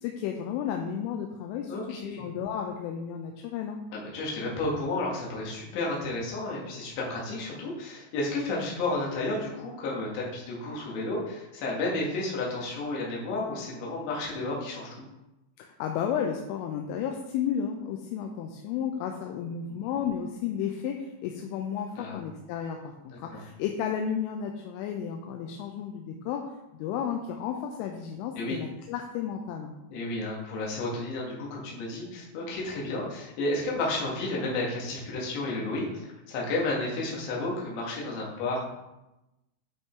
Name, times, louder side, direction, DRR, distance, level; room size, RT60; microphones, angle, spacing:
voice 1, 0.0-3.8 15.6-29.7, left 8 dB, 80° left, 3 dB, 3.1 m, -33 dB
voice 2, 1.7-2.3 3.9-15.1 19.7-19.8 22.0-22.2 23.3-23.4 28.4-28.6 29.9-38.7, left 2 dB, 65° left, -4 dB, 3.8 m, -32 dB
12.0 x 5.4 x 3.8 m, 0.96 s
omnidirectional pair, 5.9 m